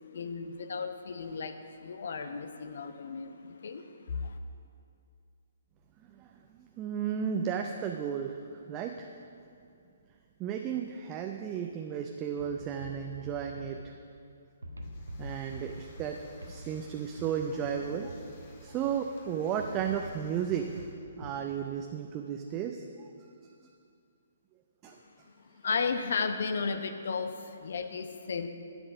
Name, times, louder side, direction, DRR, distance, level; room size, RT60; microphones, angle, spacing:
voice 1, 0.1-4.4 25.6-28.5, left 5 dB, 55° left, 8 dB, 0.9 m, -34 dB
voice 2, 6.6-9.1 10.4-13.9 15.2-16.2 16.5-18.2 18.6-20.7 21.2-23.1 24.8-25.0, right 8 dB, 25° right, 3 dB, 0.6 m, -34 dB
sound 1, 12.4-14.3 14.6-19.1 19.6-21.5, right 1 dB, 75° right, 1.1 m, -46 dB
sound 2, 14.8-21.0, right 1 dB, 40° left, 1.9 m, -55 dB
11.5 x 8.1 x 6.1 m, 2.4 s
figure-of-eight pair, 130°, 0 cm